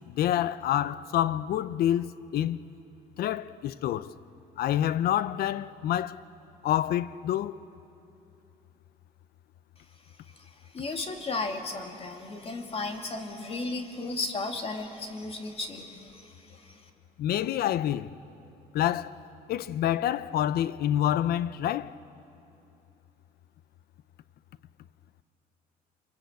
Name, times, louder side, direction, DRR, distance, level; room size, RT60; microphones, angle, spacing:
voice 1, 0.1-2.6 3.2-4.1 4.6-6.2 6.6-7.5 17.2-18.2 18.7-19.1 19.5-22.0, left 11 dB, 65° left, 0.7 m, -27 dB
voice 2, 10.7-16.2 16.5-16.7, left 3 dB, 35° left, 2.5 m, -34 dB
26.5 x 23.0 x 8.1 m
cardioid pair, 110°, 17 cm